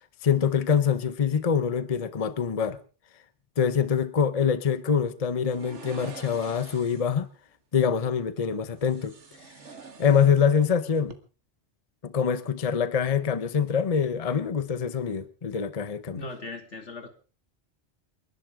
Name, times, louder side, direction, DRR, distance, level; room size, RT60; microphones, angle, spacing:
voice 1, 0.0-2.8 3.6-7.3 7.7-9.2 10.0-11.1 12.0-16.2, left 7 dB, 35° left, 0.9 m, -25 dB
sound 1, 5.5-7.2 8.8-10.7 11.0-11.2, right 4 dB, 85° right, 2.0 m, -46 dB
voice 2, 16.1-17.1, left 2 dB, 85° left, 2.8 m, -39 dB
29.0 x 11.5 x 3.7 m
omnidirectional pair, 1.2 m